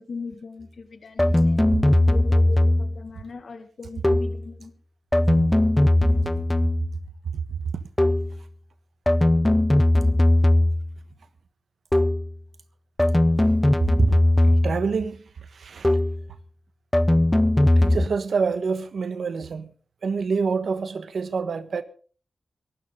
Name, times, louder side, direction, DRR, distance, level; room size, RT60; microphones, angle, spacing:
voice 1, 0.0-1.7 2.1-4.7 5.3-5.5, left 4 dB, 75° left, 1.9 m, -39 dB
sound 1, 1.2-3.0 4.0-4.5 5.1-7.0 8.0-8.4 9.1-10.9 11.9-12.3 13.0-14.9 15.8-16.3 16.9-18.1, left 1 dB, 15° left, 0.6 m, -19 dB
voice 2, 14.4-15.2 15.5-16.0 17.8-19.7 20.0-21.8, right 5 dB, 85° right, 1.4 m, -27 dB
23.5 x 12.5 x 3.8 m
cardioid pair, 70°, 0 cm